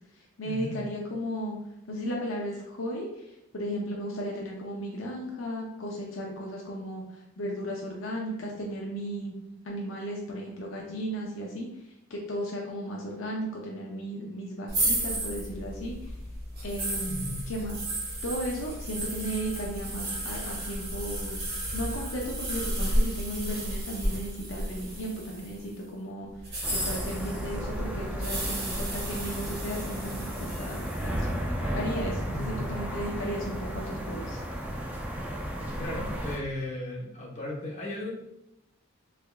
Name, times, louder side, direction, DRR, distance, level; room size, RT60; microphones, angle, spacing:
voice 1, 0.4-1.6 1.9-3.1 3.5-7.0 7.4-9.3 9.6-11.7 12.1-16.0 16.6-17.8 18.2-21.4 21.7-26.3 26.8-31.4 31.7-34.4, equal, 65° left, -2 dB, 0.5 m, -35 dB
sound 1, 14.7-25.6 26.4-31.2, right 1 dB, 45° right, 1.3 m, -33 dB
sound 2, 26.6-36.4, equal, 5° right, 0.3 m, -34 dB
voice 2, 32.2-32.6 35.8-38.1, left 1 dB, 35° left, -4 dB, 0.8 m, -36 dB
3.4 x 3.4 x 2.2 m, 0.86 s
head